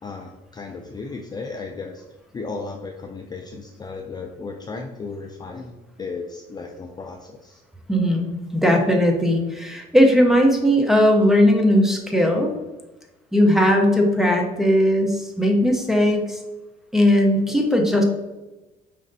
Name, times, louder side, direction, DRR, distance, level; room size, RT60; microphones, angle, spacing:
voice 1, 0.0-2.0 2.3-7.6, left 4 dB, 25° left, 2 dB, 0.4 m, -35 dB
voice 2, 7.9-12.5 13.3-16.4 16.9-18.0, equal, ahead, 2 dB, 0.7 m, -18 dB
5.0 x 3.1 x 2.6 m, 1.1 s
cardioid pair, 110°, 17 cm